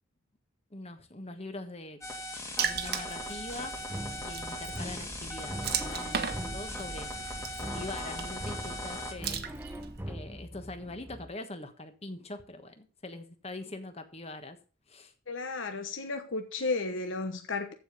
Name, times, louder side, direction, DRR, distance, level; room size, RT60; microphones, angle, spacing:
voice 1, 0.7-2.0 2.6-3.8 4.2-7.1 7.6-9.4 10.1-14.6 14.9-15.1, left 2 dB, 30° left, 1.3 m, -43 dB
sound 1, 2.0-9.1, left 1 dB, 15° left, 1.9 m, -39 dB
Water / Splash splatter, 2.6-10.0, right 6 dB, 50° right, 1.1 m, -38 dB
sound 2, 3.8-11.3, equal, 10° right, 0.8 m, -42 dB
voice 2, 15.3-17.7, left 3 dB, 65° left, 1.1 m, -33 dB
14.5 x 4.9 x 5.4 m
head